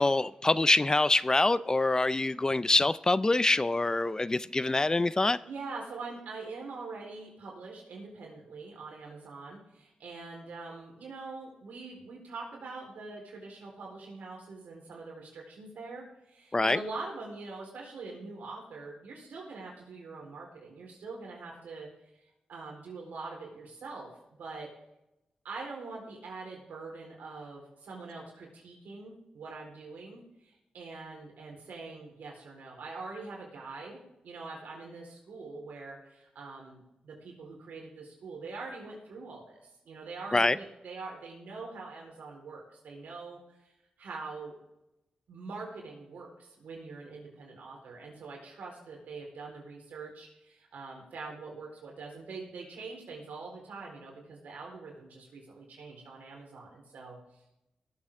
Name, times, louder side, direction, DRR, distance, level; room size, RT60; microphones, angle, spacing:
voice 1, 0.0-5.4 16.5-16.8 40.3-40.6, left 2 dB, 25° left, 17 dB, 0.4 m, -25 dB
voice 2, 5.4-21.9 22.5-24.1 24.4-24.7 25.4-43.7 44.0-44.5 45.3-57.2, right 3 dB, 90° right, 0 dB, 4.2 m, -44 dB
19.5 x 7.8 x 3.7 m, 0.91 s
cardioid pair, 65°, 3 cm